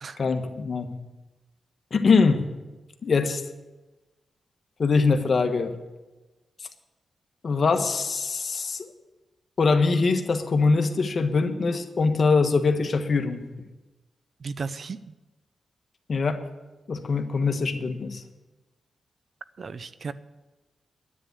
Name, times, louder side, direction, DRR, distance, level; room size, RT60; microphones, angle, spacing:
voice 1, 0.2-0.9 1.9-2.4 3.0-3.4 4.8-5.7 7.4-8.9 9.6-13.4 16.1-16.4 16.9-18.2, left 4 dB, 55° left, 7 dB, 1.4 m, -23 dB
voice 2, 14.4-15.0 19.6-20.1, right 4 dB, 60° right, 14 dB, 0.6 m, -34 dB
10.0 x 9.6 x 8.0 m, 1.1 s
cardioid pair, 50°, 0 cm